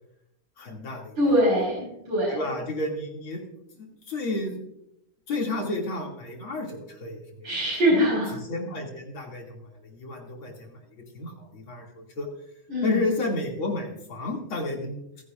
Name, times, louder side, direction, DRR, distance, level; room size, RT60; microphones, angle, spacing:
voice 1, 0.6-1.1 2.3-3.4 3.8-4.6 5.3-7.5 8.5-12.3 12.8-15.0, left 2 dB, 70° left, -1 dB, 3.6 m, -31 dB
voice 2, 1.2-2.4 7.4-8.3 12.7-13.0, equal, 55° right, -6 dB, 5.8 m, -23 dB
28.0 x 10.5 x 2.6 m, 0.81 s
omnidirectional pair, 2.3 m